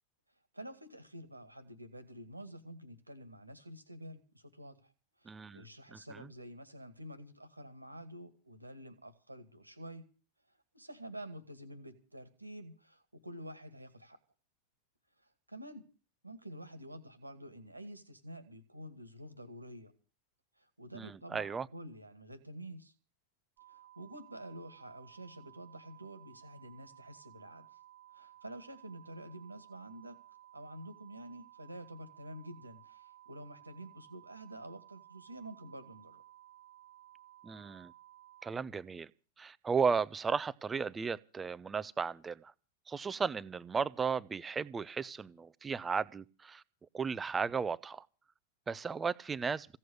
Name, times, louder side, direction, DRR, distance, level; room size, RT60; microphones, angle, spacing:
voice 1, 0.5-4.9 5.2-10.0 10.7-14.2 15.2-15.8 16.2-19.9 20.6-22.9 23.7-27.8 28.1-30.2 30.5-36.2, right 1 dB, 85° right, 2.0 m, -49 dB
voice 2, 5.3-5.6 5.9-6.3 20.9-21.7 37.4-37.9 38.4-39.1 39.4-42.5 42.9-46.6 46.9-48.1 48.7-49.7, right 5 dB, 15° right, 0.7 m, -35 dB
sound 1, 23.6-38.5, right 12 dB, 45° right, 1.5 m, -58 dB
16.0 x 7.7 x 9.7 m
figure-of-eight pair, 90°, 0 cm